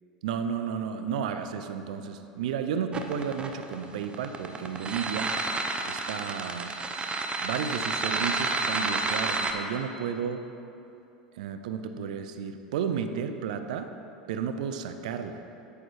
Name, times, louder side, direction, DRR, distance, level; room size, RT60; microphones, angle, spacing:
voice 1, 0.2-5.3 5.9-6.8 7.4-10.5 11.4-13.9 14.3-15.4, right 7 dB, 70° right, 9 dB, 0.4 m, -32 dB
sound 1, 2.9-9.5, right 3 dB, 25° right, 0.7 m, -30 dB
8.4 x 6.8 x 3.4 m, 2.8 s
hypercardioid pair, 85°, 4 cm